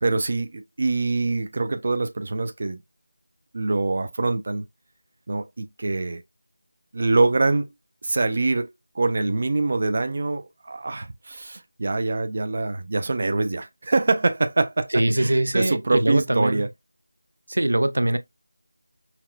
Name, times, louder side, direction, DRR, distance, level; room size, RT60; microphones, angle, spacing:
voice 1, 0.0-2.8 3.5-4.7 5.3-6.2 6.9-7.7 8.0-16.7, right 3 dB, 30° right, 0.4 m, -24 dB
voice 2, 14.9-16.7 17.5-18.2, right 1 dB, 80° right, 0.6 m, -22 dB
5.8 x 2.1 x 2.3 m
figure-of-eight pair, 180°, 0 cm